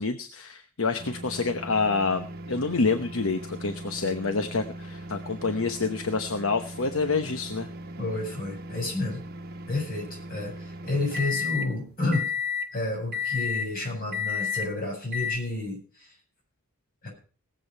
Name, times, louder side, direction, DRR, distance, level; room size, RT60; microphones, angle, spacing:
voice 1, 0.0-7.7, left 4 dB, 65° left, 8 dB, 1.0 m, -27 dB
sound 1, 1.0-11.7 12.1-12.7 13.1-13.7 14.1-14.7 15.1-15.4, left 4 dB, 45° right, 1.2 m, -35 dB
voice 2, 8.0-9.2 9.7-12.4 12.7-16.1 17.0-17.1, left 2 dB, 40° left, 0 dB, 7.9 m, -30 dB
19.0 x 7.8 x 5.5 m, 0.38 s
head